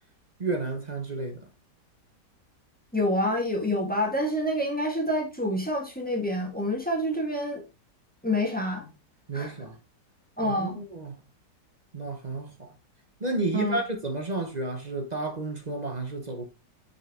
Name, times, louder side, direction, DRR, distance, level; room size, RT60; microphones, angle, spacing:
voice 1, 0.4-1.5 9.3-9.8 10.4-11.2 11.9-12.7 13.2-16.4, right 2 dB, 30° right, 0.8 m, -31 dB
voice 2, 2.9-7.6 8.2-8.9 9.3-9.6 10.4-10.8 13.5-13.8, left 1 dB, 5° left, 1.5 m, -27 dB
6.2 x 5.5 x 3.6 m
omnidirectional pair, 1.8 m